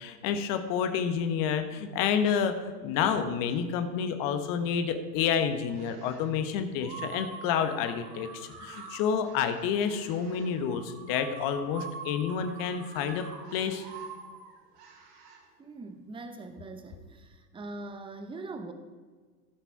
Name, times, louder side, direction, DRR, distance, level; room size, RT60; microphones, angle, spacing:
voice 1, 0.0-13.2 13.5-13.9, left 7 dB, 45° left, 8 dB, 1.2 m, -29 dB
sound 1, 5.7-6.3 6.8-15.4, right 5 dB, 50° right, 2.8 m, -45 dB
voice 2, 15.6-18.7, right 2 dB, 10° right, 7 dB, 0.9 m, -42 dB
15.0 x 5.8 x 4.7 m, 1.4 s
hypercardioid pair, 100°, 47 cm